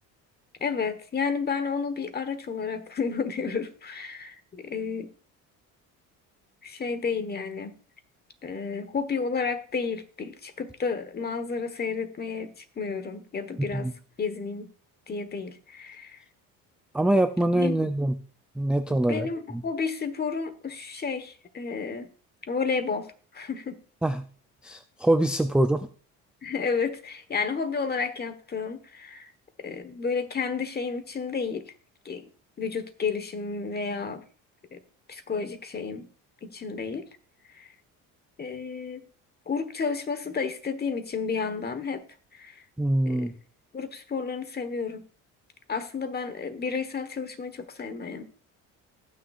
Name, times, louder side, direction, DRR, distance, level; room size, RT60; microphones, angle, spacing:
voice 1, 0.6-5.1 6.6-7.7 8.4-13.9 14.2-14.7 15.1-16.2 17.5-17.9 18.9-22.1 22.5-23.1 23.3-23.8 26.4-29.3 29.6-31.6 32.0-32.2 32.6-34.2 34.7-34.8 35.1-36.1 36.4-37.0 37.5-37.7 38.4-39.0 39.5-42.0 42.3-42.6 43.1-43.3 43.7-45.0 45.7-48.2, left 5 dB, 30° left, 10 dB, 1.3 m, -31 dB
voice 2, 16.9-18.1 18.6-19.6 24.0-24.2 24.6-25.9 42.8-43.3, right 1 dB, 5° right, 8 dB, 0.4 m, -24 dB
19.5 x 6.5 x 2.5 m, 0.40 s
cardioid pair, 110°, 33 cm